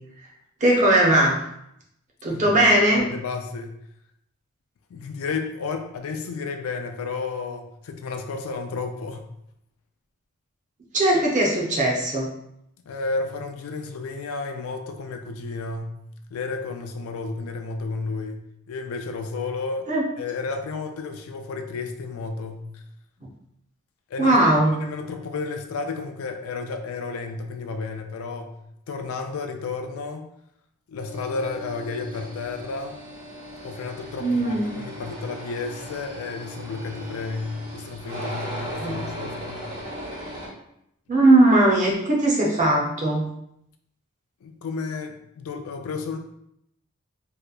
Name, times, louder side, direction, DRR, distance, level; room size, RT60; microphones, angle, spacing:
voice 1, 0.6-1.4 2.2-3.0 10.9-12.3 19.9-20.0 24.2-24.7 34.2-34.7 38.8-39.3 41.1-43.3, right 1 dB, 35° right, -3 dB, 0.6 m, -19 dB
voice 2, 2.9-3.8 4.9-9.3 12.9-16.0 16.3-19.9 20.2-22.8 24.1-28.5 28.9-30.3 30.9-33.0 33.6-39.7 44.4-46.2, left 4 dB, 90° left, 5 dB, 0.3 m, -32 dB
sound 1, 31.0-40.5, equal, 75° right, 1.2 m, -38 dB
2.8 x 2.2 x 2.3 m, 0.78 s
head